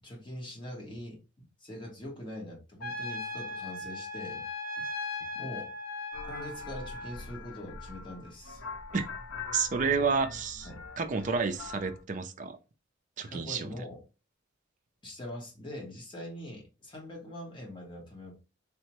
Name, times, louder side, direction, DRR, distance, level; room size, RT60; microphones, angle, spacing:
voice 1, 0.0-1.2 1.6-4.4 4.8-4.9 5.3-5.7 6.3-8.6 10.6-10.8 13.3-14.0 15.0-18.4, left 1 dB, 25° left, 0.9 m, -43 dB
Trumpet, 2.8-7.2, left 2 dB, 50° left, 0.9 m, -38 dB
sound 1, 6.1-12.0, left 4 dB, 85° left, 0.6 m, -43 dB
voice 2, 9.5-10.7 11.0-12.6 13.2-13.7, right 5 dB, 40° right, 0.4 m, -30 dB
3.6 x 2.1 x 2.9 m
head